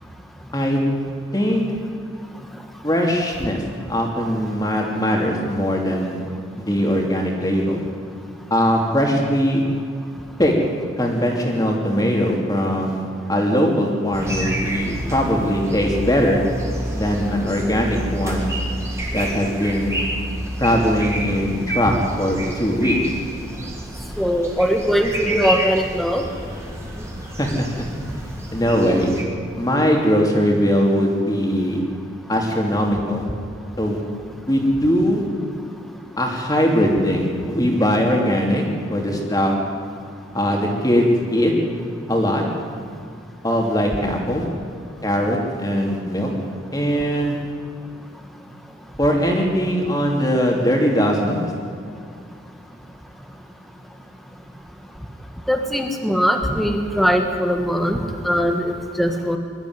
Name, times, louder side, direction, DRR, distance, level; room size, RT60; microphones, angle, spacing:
voice 1, 2.8-3.6 3.9-6.2 6.6-7.8 8.5-9.6 10.4-10.5 11.0-13.0 13.3-16.4 16.9-18.5 19.1-20.0 20.6-23.0 27.4-27.9 28.5-29.1 29.6-31.8 32.3-33.2 33.8-34.0 34.5-35.2 36.2-38.6 38.9-39.5 40.3-41.5 42.1-42.4 43.4-44.4 45.0-46.3 46.7-47.4 49.0-51.5, equal, 20° left, 0 dB, 3.0 m, -20 dB
sound 1, 14.1-29.2, equal, 15° right, 2.9 m, -29 dB
voice 2, 24.2-26.2 55.5-59.4, equal, ahead, 4 dB, 1.4 m, -20 dB
22.0 x 13.5 x 9.7 m, 2.3 s
head